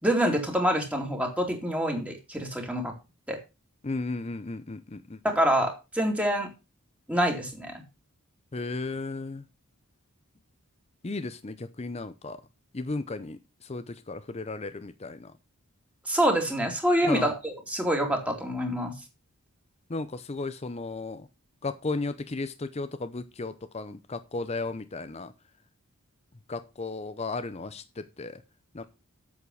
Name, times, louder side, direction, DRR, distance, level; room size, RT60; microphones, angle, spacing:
voice 1, 0.0-2.9 3.3-3.4 5.2-6.5 7.1-7.8 16.1-18.9, equal, 5° right, 2 dB, 2.5 m, -26 dB
voice 2, 3.8-5.2 8.5-9.4 11.0-12.4 12.7-13.4 13.7-15.3 17.1-17.3 19.9-21.3 21.6-25.3 26.5-28.4 28.7-28.8, left 3 dB, 30° left, 11 dB, 0.6 m, -34 dB
8.3 x 7.4 x 6.3 m, 0.28 s
head